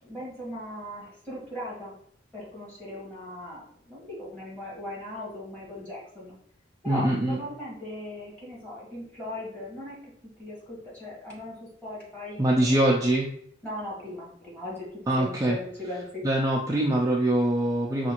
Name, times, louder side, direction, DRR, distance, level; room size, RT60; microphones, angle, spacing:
voice 1, 0.0-2.0 2.3-6.3 6.8-10.1 10.4-13.0 13.6-16.2, left 1 dB, 10° left, -7 dB, 1.4 m, -38 dB
voice 2, 6.8-7.4 12.4-13.3 15.1-18.1, right 1 dB, 15° right, -3 dB, 0.3 m, -24 dB
5.2 x 2.4 x 2.9 m, 0.66 s
head